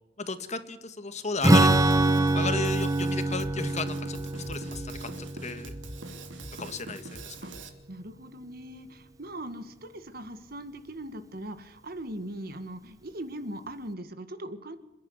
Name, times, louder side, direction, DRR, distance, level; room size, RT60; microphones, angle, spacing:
voice 1, 0.2-1.7 2.3-4.2 4.5-5.1 5.4-5.7 6.6-7.4, left 3 dB, 35° left, 10 dB, 1.6 m, -34 dB
Strum, 1.4-7.1, right 2 dB, 20° right, 1.3 m, -25 dB
Drum kit, 1.7-7.7, right 2 dB, 85° right, 2.9 m, -43 dB
voice 2, 7.9-14.8, right 1 dB, 55° right, 10 dB, 1.9 m, -40 dB
27.0 x 11.0 x 9.7 m, 0.94 s
head